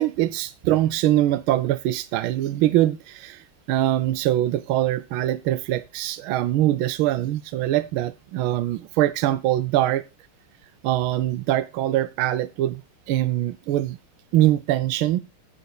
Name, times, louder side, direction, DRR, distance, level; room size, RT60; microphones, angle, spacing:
voice 1, 0.0-10.0 10.8-12.8 13.1-14.0 14.3-15.2, right 14 dB, 80° right, 1.5 m, -23 dB
8.3 x 6.7 x 4.7 m
omnidirectional pair, 2.3 m